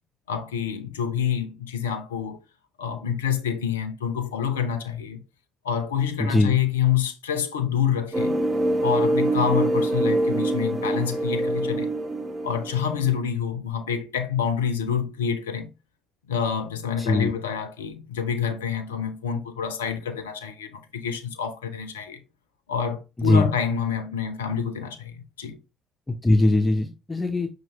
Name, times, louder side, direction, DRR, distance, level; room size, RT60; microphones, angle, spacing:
voice 1, 0.3-2.4 2.8-5.2 5.6-8.4 8.8-11.9 12.4-15.7 16.3-22.2 22.7-25.6, left 8 dB, 85° left, 0.5 m, -27 dB
voice 2, 6.2-6.6 17.0-17.3 23.2-23.5 26.1-27.5, left 2 dB, 20° left, 0.6 m, -21 dB
sound 1, 8.1-13.2, right 1 dB, 35° right, 1.0 m, -24 dB
5.6 x 2.6 x 3.0 m
hypercardioid pair, 50°, 0 cm